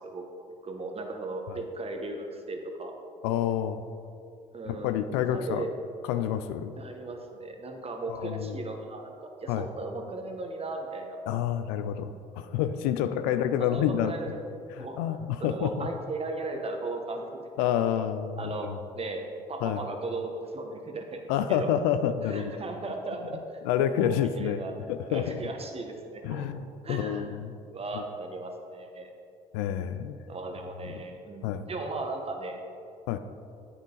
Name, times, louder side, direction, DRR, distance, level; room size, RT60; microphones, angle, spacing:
voice 1, 0.0-2.9 4.5-5.0 5.3-5.7 6.8-11.2 13.0-13.3 13.6-14.3 14.8-15.0 15.4-17.2 18.4-18.7 19.0-19.2 19.5-21.2 21.5-21.7 22.3-23.6 23.9-24.7 25.1-26.4 26.8-27.4 27.7-29.1 30.3-32.6, right 3 dB, 35° right, 3 dB, 1.2 m, -37 dB
voice 2, 3.2-3.8 4.6-5.6 6.1-6.7 8.1-8.6 9.5-9.7 11.3-14.1 14.8-15.9 17.6-18.8 19.6-19.8 21.3-22.6 23.6-25.4 26.2-27.6 27.9-28.1 29.5-30.2 30.8-31.0 31.4-31.6 33.1-33.2, left 10 dB, 75° left, 10 dB, 0.4 m, -28 dB
8.7 x 6.1 x 3.9 m, 2.5 s
hypercardioid pair, 55°, 18 cm